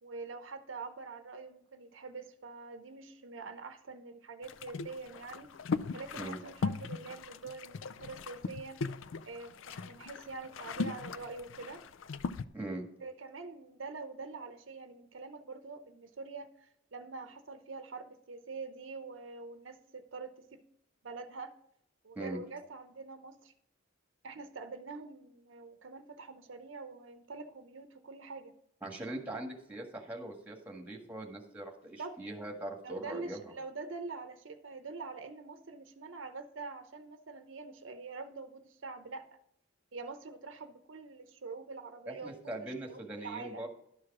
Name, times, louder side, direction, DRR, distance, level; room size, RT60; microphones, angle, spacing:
voice 1, 0.0-5.5 5.9-8.8 9.3-11.8 13.0-20.6 21.0-21.5 22.0-23.5 24.2-28.5 31.8-32.2 32.8-39.4 39.9-43.6, right 4 dB, 75° right, 8 dB, 0.8 m, -45 dB
sound 1, 4.4-12.5, left 4 dB, 75° left, 0.4 m, -39 dB
voice 2, 12.5-12.8 22.2-22.4 28.8-33.5 42.1-43.7, right 1 dB, 10° right, 1 dB, 1.7 m, -41 dB
12.0 x 4.8 x 6.0 m, 0.74 s
head